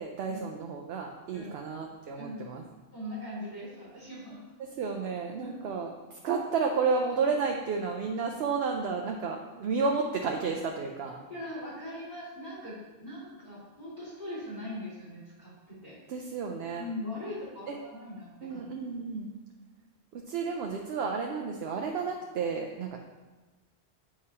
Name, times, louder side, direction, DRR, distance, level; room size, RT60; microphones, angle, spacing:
voice 1, 0.0-2.6 4.8-11.2 16.1-16.8 17.7-17.8 18.4-19.3 20.1-23.0, right 5 dB, 70° right, 2 dB, 0.8 m, -31 dB
voice 2, 2.2-2.5 2.9-4.4 5.4-5.5 11.3-16.0 16.8-18.6, left 1 dB, 50° left, -8 dB, 2.5 m, -40 dB
8.6 x 4.8 x 2.8 m, 1.2 s
omnidirectional pair, 1.1 m